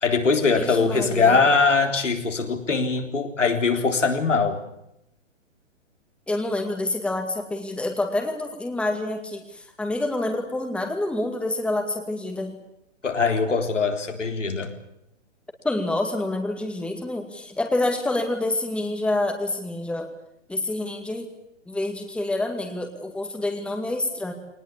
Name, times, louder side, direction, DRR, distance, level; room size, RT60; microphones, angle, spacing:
voice 1, 0.0-4.6 13.0-14.7, left 4 dB, 75° left, 4 dB, 3.9 m, -22 dB
voice 2, 0.5-1.5 6.3-12.6 15.6-20.1 20.5-21.3 21.7-24.3, left 2 dB, 5° left, 4 dB, 2.2 m, -27 dB
22.5 x 19.5 x 8.6 m, 0.81 s
figure-of-eight pair, 120°, 37 cm